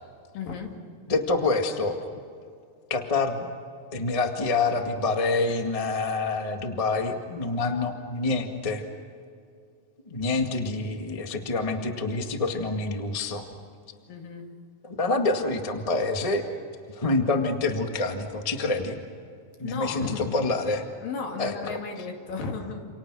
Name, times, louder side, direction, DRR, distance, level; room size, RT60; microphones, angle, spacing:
voice 1, 0.3-0.7 10.3-10.4 14.1-14.6 19.6-20.4 21.0-22.8, left 5 dB, 65° left, 3 dB, 4.0 m, -34 dB
voice 2, 1.1-2.0 2.9-3.5 3.9-8.8 10.1-13.5 14.8-16.5 16.9-19.0 19.6-20.8 21.4-21.5, left 3 dB, 45° left, 4 dB, 0.4 m, -27 dB
28.5 x 28.5 x 6.3 m, 2.4 s
omnidirectional pair, 4.5 m